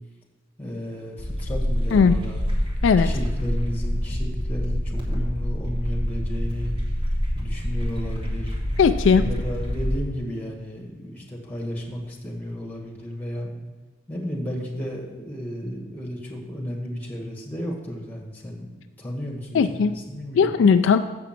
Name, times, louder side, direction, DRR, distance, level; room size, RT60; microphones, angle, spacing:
voice 1, 0.6-2.4 3.0-6.7 7.3-8.5 9.2-13.6 14.1-18.7 19.0-20.5, equal, 10° left, 0 dB, 1.6 m, -33 dB
sound 1, 1.2-10.0, equal, 25° right, 1.8 m, -26 dB
voice 2, 8.8-9.2 19.5-19.9 20.3-21.0, left 6 dB, 65° left, 9 dB, 0.3 m, -17 dB
6.9 x 6.1 x 7.4 m, 1.3 s
head